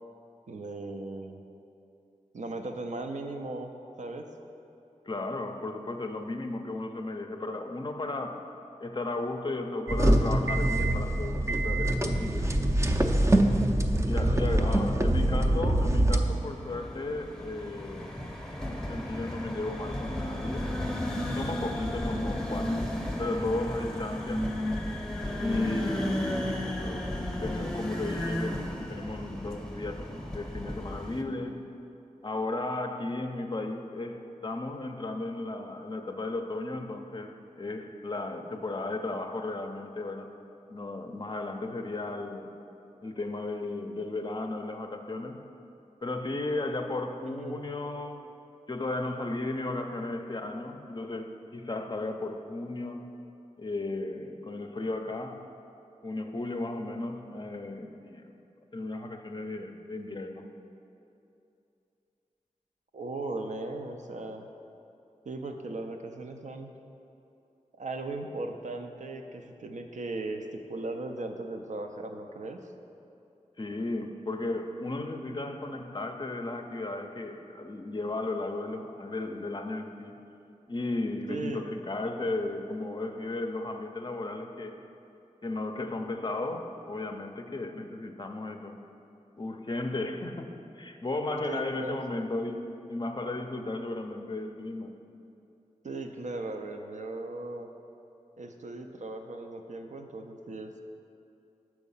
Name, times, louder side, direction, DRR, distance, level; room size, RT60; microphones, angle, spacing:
voice 1, 0.5-1.4 2.3-3.7 4.0-4.3 14.1-15.0 47.3-47.6 62.9-64.5 65.3-66.7 67.8-72.6 81.3-81.7 91.4-92.0 95.8-97.7 98.4-100.7, right 2 dB, 70° right, 4 dB, 0.5 m, -38 dB
voice 2, 5.1-8.5 8.8-12.5 14.1-18.1 18.6-20.7 21.3-22.9 23.2-24.5 25.4-26.5 26.8-31.7 32.2-40.3 40.7-42.5 43.0-45.5 46.0-48.3 48.7-53.1 53.6-55.5 56.0-58.3 58.7-60.4 73.6-80.2 80.7-84.9 85.4-88.8 89.4-94.9, left 2 dB, 35° left, 5 dB, 0.5 m, -35 dB
sound 1, 9.9-16.2, right 1 dB, 25° right, 0.5 m, -24 dB
sound 2, 16.3-31.2, left 1 dB, 5° left, 0.8 m, -34 dB
6.2 x 4.6 x 5.5 m, 2.7 s
wide cardioid pair, 55°, 13 cm